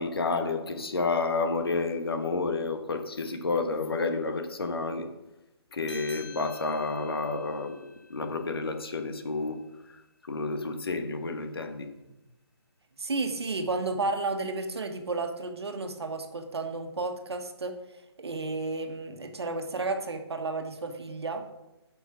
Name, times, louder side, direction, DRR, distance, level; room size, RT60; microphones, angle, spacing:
voice 1, 0.0-5.1 5.7-7.8 8.1-9.6 9.9-10.0 10.3-11.9, left 3 dB, 60° left, 6 dB, 1.3 m, -30 dB
sound 1, 5.8-10.7, left 4 dB, 80° left, 3.6 m, -51 dB
voice 2, 13.0-17.8 18.2-21.4, right 3 dB, 70° right, 6 dB, 1.5 m, -32 dB
8.6 x 6.1 x 6.1 m, 0.98 s
hypercardioid pair, 180°, 14 cm